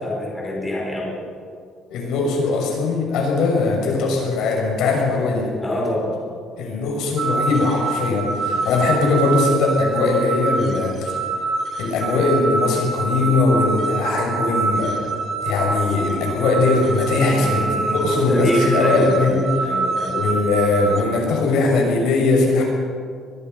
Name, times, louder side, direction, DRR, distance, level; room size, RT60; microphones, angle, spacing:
voice 1, 0.0-1.1 5.6-6.2 8.5-8.8 17.1-20.1, left 1 dB, 10° left, -2 dB, 4.5 m, -25 dB
voice 2, 1.9-5.5 6.6-11.1 11.8-14.9 15.4-19.4 20.1-22.6, left 3 dB, 70° left, 0 dB, 6.6 m, -20 dB
sound 1, 7.2-21.0, right 4 dB, 35° right, 2.4 m, -25 dB
24.0 x 22.0 x 5.6 m, 2.2 s
cardioid pair, 160°, 0 cm